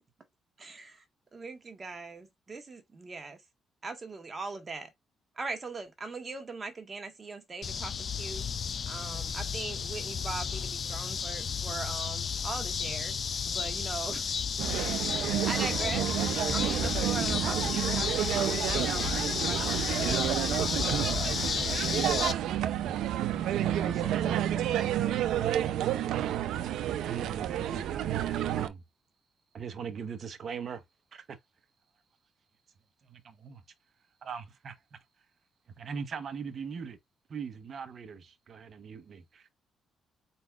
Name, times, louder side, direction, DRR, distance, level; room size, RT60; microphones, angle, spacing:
voice 1, 0.6-1.0 1.3-3.4 3.8-4.9 5.3-8.5 8.9-14.4 15.0-16.1 16.5-22.2, right 4 dB, 30° right, 1.4 m, -41 dB
sound 1, 7.6-22.3, left 6 dB, 50° left, 0.5 m, -32 dB
sound 2, 14.6-28.7, right 11 dB, 80° right, 0.5 m, -30 dB
voice 2, 23.6-25.6, left 3 dB, 25° left, 1.3 m, -48 dB
voice 3, 27.0-28.1 28.4-28.8 29.5-30.8 31.1-31.4 33.0-33.6 34.2-35.0 35.8-37.0 37.3-39.5, right 6 dB, 50° right, 0.9 m, -40 dB
4.6 x 4.0 x 2.3 m
cardioid pair, 90°, 0 cm